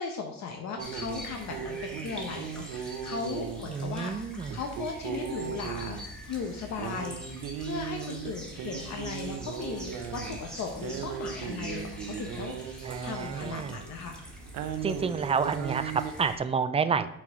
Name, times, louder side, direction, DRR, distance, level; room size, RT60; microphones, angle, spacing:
voice 1, 0.0-7.2 7.6-14.2, left 5 dB, 60° left, 4 dB, 0.9 m, -37 dB
sound 1, 0.8-16.4, equal, 5° left, 1.7 m, -44 dB
sound 2, 0.8-16.1, right 8 dB, 80° right, 0.7 m, -38 dB
voice 2, 3.7-4.6 12.8-13.8 14.8-17.1, right 6 dB, 20° right, 12 dB, 0.4 m, -29 dB
6.2 x 4.4 x 4.5 m, 0.81 s
cardioid pair, 100°, 32 cm